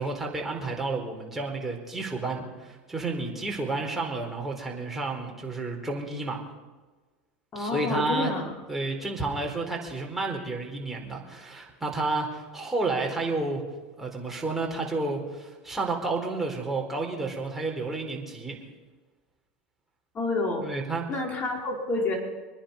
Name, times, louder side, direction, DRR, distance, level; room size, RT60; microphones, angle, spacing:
voice 1, 0.0-6.4 7.5-8.3 8.7-13.6 14.0-18.6 20.6-21.0, right 3 dB, 5° right, -1 dB, 4.4 m, -31 dB
voice 2, 7.5-8.5 20.1-20.6 21.1-22.2, left 2 dB, 35° left, 0 dB, 4.8 m, -28 dB
25.5 x 10.0 x 5.5 m, 1.3 s
hypercardioid pair, 100°, 5 cm